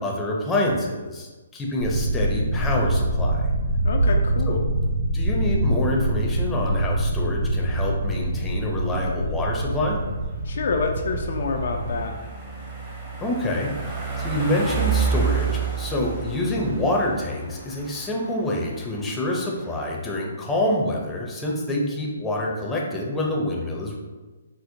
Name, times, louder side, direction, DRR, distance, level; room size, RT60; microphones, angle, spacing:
voice 1, 0.0-3.5 4.5-4.6 5.1-10.0 13.2-24.0, left 1 dB, 10° left, -2 dB, 0.6 m, -26 dB
sound 1, 1.8-12.0, right 1 dB, 75° right, 0.5 m, -25 dB
voice 2, 3.8-4.7 10.4-12.3, left 4 dB, 60° left, 3 dB, 0.3 m, -27 dB
sound 2, 8.3-19.8, right 6 dB, 20° right, 0.8 m, -31 dB
4.3 x 2.0 x 2.7 m, 1.2 s
hypercardioid pair, 140°, 0 cm